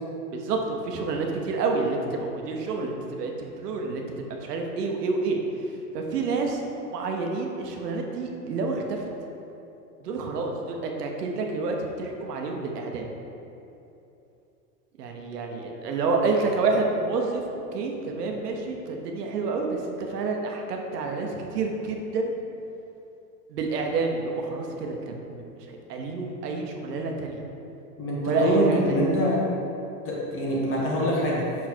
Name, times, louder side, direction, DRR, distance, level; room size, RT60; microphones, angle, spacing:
voice 1, 0.3-4.0 4.3-6.6 6.9-9.1 10.0-13.0 15.0-17.4 17.7-22.3 23.5-27.4 28.2-29.0, right 3 dB, 80° right, 2 dB, 1.0 m, -28 dB
voice 2, 28.0-29.4 30.0-31.5, equal, 25° left, -4 dB, 1.3 m, -24 dB
6.1 x 4.1 x 4.4 m, 2.8 s
supercardioid pair, 135°, 46 cm